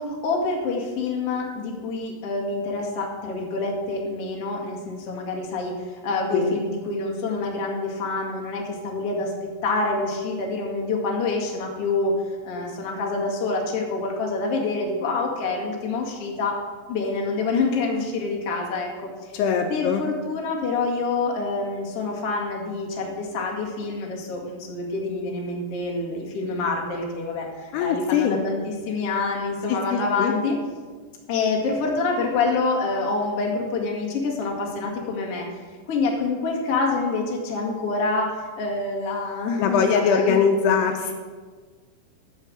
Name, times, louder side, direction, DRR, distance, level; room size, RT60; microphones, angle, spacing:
voice 1, 0.0-12.1 12.4-16.6 16.9-19.3 19.7-30.6 31.3-35.5 35.9-40.4, left 3 dB, 45° left, -1 dB, 2.2 m, -27 dB
voice 2, 19.3-20.1 27.7-28.4 29.7-30.3 39.6-41.1, left 6 dB, 80° left, 4 dB, 2.7 m, -22 dB
14.0 x 5.6 x 7.6 m, 1.5 s
omnidirectional pair, 4.9 m